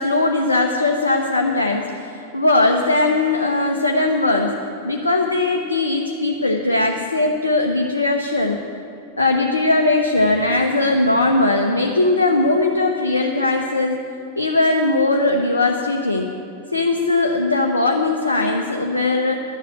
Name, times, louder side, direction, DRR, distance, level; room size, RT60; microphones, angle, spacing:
voice 1, 0.0-4.5 4.8-8.6 9.2-14.0 14.4-16.3 16.7-19.4, left 2 dB, 80° left, 2 dB, 0.8 m, -19 dB
11.5 x 7.6 x 9.6 m, 2.7 s
figure-of-eight pair, 90°, 0 cm